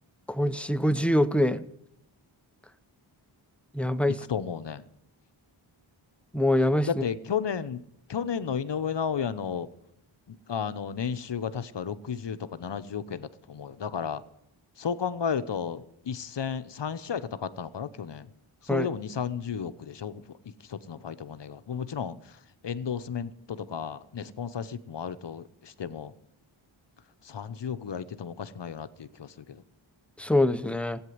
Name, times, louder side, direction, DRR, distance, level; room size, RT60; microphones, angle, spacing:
voice 1, 0.3-1.6 3.7-4.2 6.3-6.9 18.7-18.9 30.2-31.0, left 1 dB, ahead, 12 dB, 0.7 m, -24 dB
voice 2, 4.2-4.8 6.9-7.8 8.1-9.7 10.3-14.2 14.8-18.3 18.6-20.2 20.7-22.2 22.6-26.1 27.2-29.6, left 7 dB, 60° left, 13 dB, 0.9 m, -33 dB
15.5 x 8.9 x 9.4 m, 0.78 s
cardioid pair, 60°, 49 cm